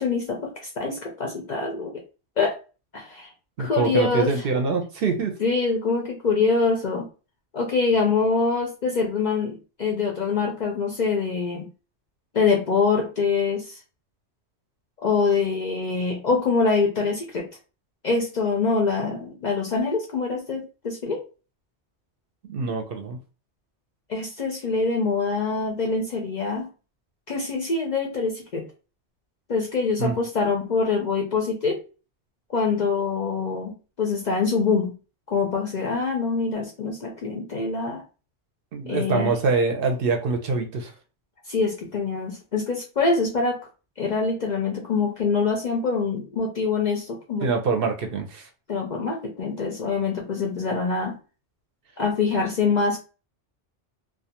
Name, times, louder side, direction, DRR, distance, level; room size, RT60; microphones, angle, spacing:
voice 1, 0.0-2.0 2.4-2.5 2.9-3.3 3.6-4.3 5.4-7.1 7.5-11.7 12.3-13.8 15.0-17.5 18.0-21.2 24.1-26.7 27.3-28.6 29.5-31.8 32.5-33.7 34.0-34.9 35.3-38.0 38.9-39.3 41.5-43.6 44.0-47.5 48.7-51.2 52.0-53.0, left 4 dB, 55° left, 1 dB, 0.5 m, -24 dB
voice 2, 3.6-5.4 22.4-23.2 30.0-30.1 38.7-40.9 47.4-48.5, right 4 dB, 65° right, 5 dB, 0.7 m, -24 dB
2.3 x 2.3 x 2.8 m, 0.34 s
omnidirectional pair, 1.2 m